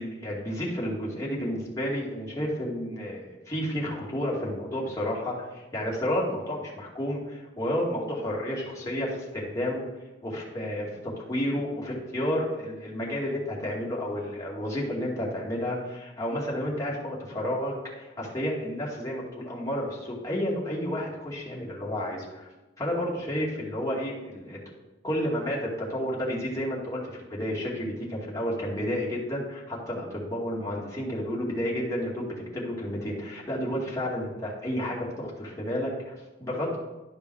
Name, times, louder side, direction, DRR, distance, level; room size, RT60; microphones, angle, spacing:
voice 1, 0.0-9.8 10.2-10.9 11.3-22.5 22.8-24.6 25.0-36.8, equal, 20° left, -5 dB, 2.3 m, -31 dB
11.5 x 5.3 x 4.8 m, 1.1 s
head